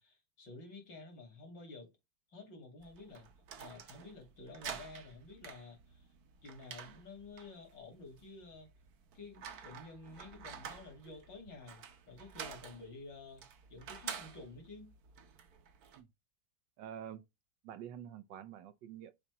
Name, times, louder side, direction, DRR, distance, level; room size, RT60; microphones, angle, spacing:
voice 1, 0.0-1.9 2.3-3.3 3.6-6.1 6.4-8.7 9.1-11.8 12.1-14.9, left 3 dB, 80° left, 3.2 m, -51 dB
sound 1, 2.8-16.0, right 7 dB, 60° right, 1.4 m, -50 dB
voice 2, 16.8-17.2 17.6-19.1, right 9 dB, 80° right, 1.4 m, -47 dB
7.2 x 2.9 x 4.6 m
omnidirectional pair, 2.0 m